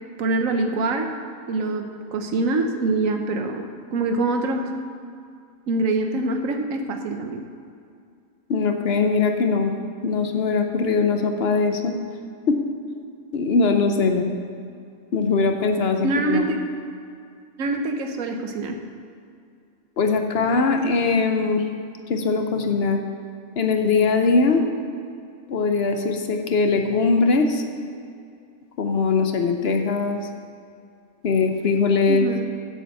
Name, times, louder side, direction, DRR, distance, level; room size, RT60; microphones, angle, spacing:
voice 1, 0.2-1.1 1.5-4.7 5.7-7.4 16.0-16.6 17.6-18.8 32.1-32.4, right 2 dB, 90° right, 5 dB, 1.3 m, -24 dB
voice 2, 8.5-9.7 10.0-11.9 12.5-12.6 13.3-14.3 15.1-16.5 20.0-21.6 22.1-23.0 23.6-24.6 25.5-27.6 28.8-30.2 31.2-32.3, left 4 dB, 55° left, 5 dB, 0.9 m, -21 dB
7.6 x 6.7 x 7.7 m, 2.4 s
omnidirectional pair, 1.3 m